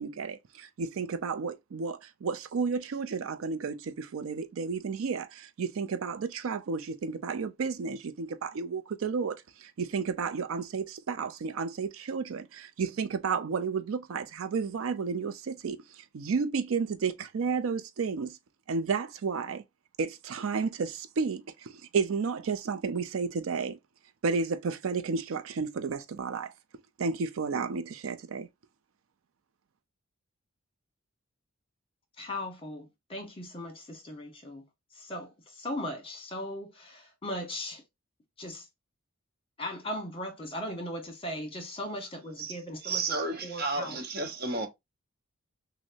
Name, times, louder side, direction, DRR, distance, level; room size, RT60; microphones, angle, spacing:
voice 1, 0.0-18.4 18.7-19.6 20.0-23.8 24.2-26.5 27.0-28.5, right 5 dB, 65° right, 0.4 m, -32 dB
voice 2, 32.2-34.6 34.9-37.8 38.4-38.7 39.6-44.0, left 1 dB, 25° left, 1.1 m, -38 dB
voice 3, 42.8-44.7, right 3 dB, 45° right, 0.9 m, -32 dB
6.1 x 2.1 x 2.6 m
head